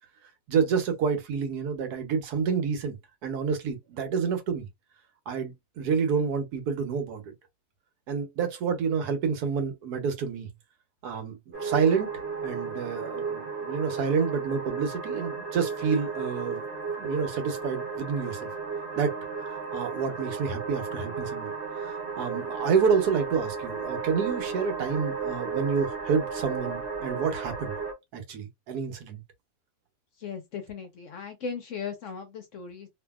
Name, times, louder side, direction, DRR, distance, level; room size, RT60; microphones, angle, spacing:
voice 1, 0.5-4.7 5.3-7.3 8.1-10.5 11.0-12.1 12.4-16.6 17.0-18.5 18.9-19.1 19.7-21.5 21.9-27.8 28.1-29.2, right 6 dB, 80° right, 1.3 m, -28 dB
sound 1, 11.5-27.9, right 5 dB, 45° right, 1.0 m, -34 dB
voice 2, 30.2-32.9, left 6 dB, 65° left, 0.9 m, -37 dB
2.7 x 2.5 x 2.2 m
omnidirectional pair, 1.7 m